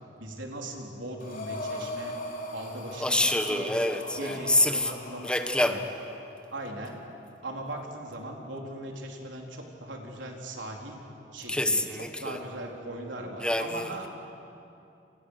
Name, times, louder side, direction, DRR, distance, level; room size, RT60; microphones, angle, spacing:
voice 1, 0.2-2.1 2.5-3.7 4.2-5.3 5.6-5.8 6.5-7.0 7.4-11.0 11.3-11.9 12.2-14.1, right 1 dB, 90° right, 0 dB, 4.2 m, -39 dB
Breathing, 1.2-6.1, left 1 dB, 50° left, 4.1 m, -40 dB
voice 2, 3.0-4.9 5.2-5.8 11.5-12.4 13.4-14.1, left 1 dB, 5° left, 6 dB, 1.2 m, -26 dB
29.5 x 28.0 x 6.6 m, 2.8 s
head